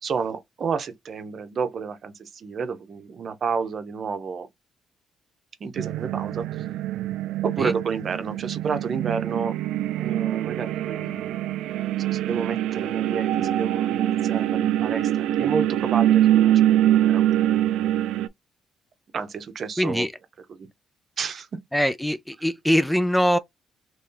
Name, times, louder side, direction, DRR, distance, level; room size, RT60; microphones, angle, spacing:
voice 1, 0.0-4.5 5.6-6.7 7.4-9.6 10.0-11.6 11.9-15.1 15.4-17.2 19.1-20.1 20.6-20.7 21.2-21.5, right 5 dB, 55° right, 0.7 m, -30 dB
sound 1, 5.8-18.3, right 12 dB, 90° right, 0.3 m, -24 dB
voice 2, 19.8-20.1 21.7-23.4, equal, 5° left, 0.3 m, -22 dB
3.0 x 2.7 x 3.7 m
cardioid pair, 90°, 0 cm